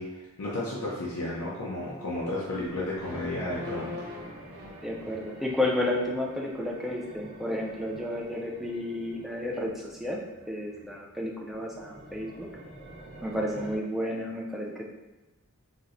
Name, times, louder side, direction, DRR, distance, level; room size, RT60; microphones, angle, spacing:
voice 1, 0.0-3.9, left 1 dB, 85° left, -6 dB, 0.6 m, -33 dB
sound 1, 2.4-13.8, right 2 dB, 50° right, 0.6 m, -49 dB
sound 2, 2.9-5.9, left 1 dB, 85° right, 0.8 m, -42 dB
voice 2, 4.8-10.2 10.5-12.5 13.2-14.9, left 1 dB, ahead, -2 dB, 0.3 m, -32 dB
4.1 x 2.0 x 2.5 m, 1.1 s
head